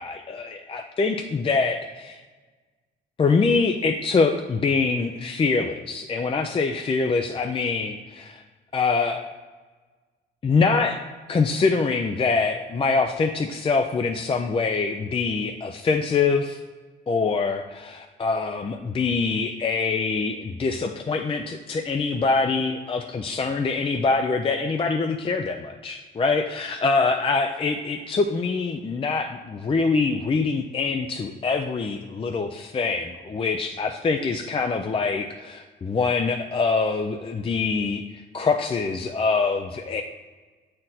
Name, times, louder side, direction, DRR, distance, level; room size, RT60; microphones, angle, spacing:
voice 1, 0.0-2.2 3.2-8.4 8.7-9.2 10.4-11.0 11.3-16.6 17.1-40.0, left 4 dB, 25° left, 4 dB, 0.5 m, -24 dB
7.5 x 4.3 x 4.0 m, 1.3 s
cardioid pair, 90°, 20 cm